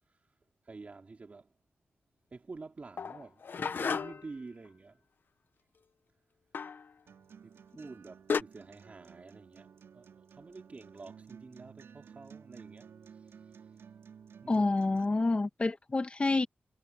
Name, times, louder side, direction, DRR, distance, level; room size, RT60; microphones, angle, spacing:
voice 1, 0.6-1.5 2.3-5.0 7.4-13.4 14.4-14.6, right 3 dB, 35° right, 2.8 m, -49 dB
Pots and Pans, 3.0-4.4 6.5-6.9 7.8-7.9 8.3-8.4, left 5 dB, 55° left, 0.9 m, -33 dB
Acoustic guitar, 7.1-15.1, right 7 dB, 85° right, 3.4 m, -54 dB
voice 2, 14.5-16.5, left 3 dB, 30° left, 1.3 m, -28 dB
wide cardioid pair, 125°, 4 cm